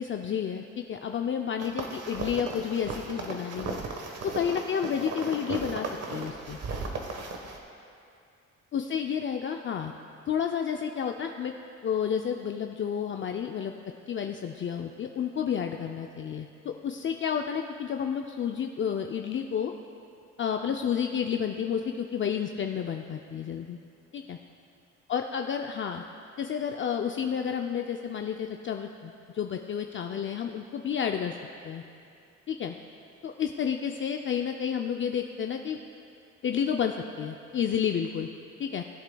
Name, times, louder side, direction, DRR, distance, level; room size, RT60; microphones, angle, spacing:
voice 1, 0.0-3.8 4.2-6.6 8.7-9.9 10.3-11.5 11.8-13.7 14.1-19.7 20.4-23.8 24.1-24.4 25.1-26.0 26.4-31.3 31.6-31.8 32.5-32.8 33.2-35.8 36.4-38.3 38.6-38.8, left 8 dB, 40° left, 4 dB, 0.5 m, -30 dB
sound 1, 1.6-7.6, right 3 dB, 55° right, 1.3 m, -36 dB
19.0 x 8.0 x 2.3 m, 2.5 s
cardioid pair, 90°, 30 cm